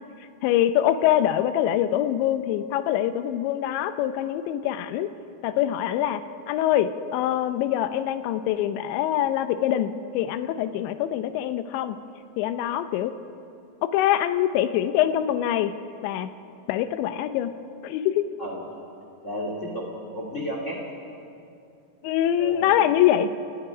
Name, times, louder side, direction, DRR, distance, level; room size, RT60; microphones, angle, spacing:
voice 1, 0.4-5.1 5.4-6.2 6.5-12.0 12.4-13.1 13.8-15.7 16.0-16.3 16.7-17.5 17.8-18.2 22.0-23.3, left 11 dB, 80° left, 10 dB, 2.7 m, -24 dB
voice 2, 19.2-20.8 22.4-22.7, equal, 40° left, 0 dB, 1.0 m, -32 dB
29.0 x 19.0 x 5.0 m, 2.5 s
omnidirectional pair, 5.8 m